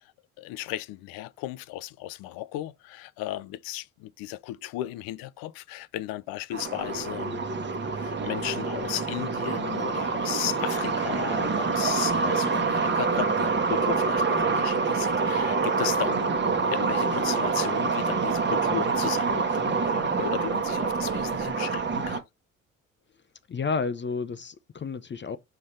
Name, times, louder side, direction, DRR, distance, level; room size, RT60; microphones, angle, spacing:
voice 1, 0.0-7.4 7.9-22.2, left 15 dB, 65° left, 0.7 m, -35 dB
sound 1, 6.5-22.2, right 4 dB, 30° right, 1.2 m, -26 dB
voice 2, 23.5-25.4, left 5 dB, 30° left, 0.7 m, -31 dB
5.7 x 5.2 x 3.2 m
hypercardioid pair, 50°, 39 cm